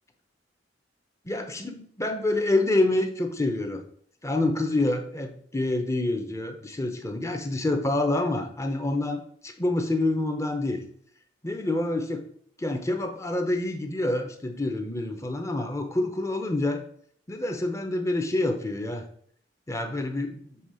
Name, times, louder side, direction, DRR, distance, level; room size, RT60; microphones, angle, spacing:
voice 1, 1.2-3.8 4.2-10.8 11.4-12.2 12.6-16.8 17.3-19.0 19.7-20.6, left 2 dB, 15° left, 5 dB, 0.8 m, -27 dB
7.2 x 3.6 x 4.9 m, 0.63 s
head